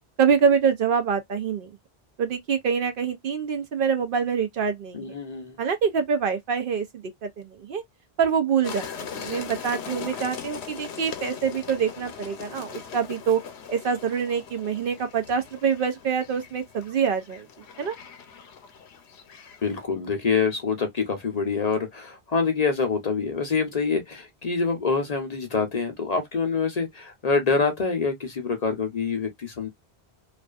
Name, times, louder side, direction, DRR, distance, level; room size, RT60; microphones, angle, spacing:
voice 1, 0.2-1.7 2.2-5.2 5.6-7.8 8.2-13.4 13.7-17.5 17.8-17.9, right 6 dB, 65° right, 0.7 m, -25 dB
voice 2, 4.9-5.6 19.6-29.7, left 5 dB, 50° left, 0.6 m, -26 dB
sound 1, 8.6-19.8, left 7 dB, 80° left, 0.9 m, -40 dB
2.4 x 2.3 x 2.3 m
omnidirectional pair, 1.1 m